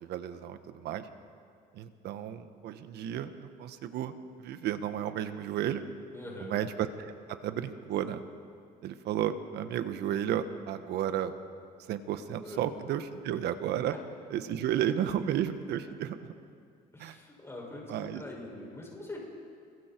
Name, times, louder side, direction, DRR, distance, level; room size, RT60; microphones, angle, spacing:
voice 1, 0.0-1.1 1.7-5.8 6.4-8.2 8.8-11.3 11.9-13.9 14.3-16.3 17.0-17.2 17.9-18.2, right 10 dB, 75° right, 10 dB, 1.4 m, -33 dB
voice 2, 6.1-6.6 12.4-12.6 16.9-19.2, left 1 dB, 15° left, -2 dB, 6.6 m, -43 dB
29.5 x 22.5 x 4.6 m, 2.2 s
cardioid pair, 110°, 17 cm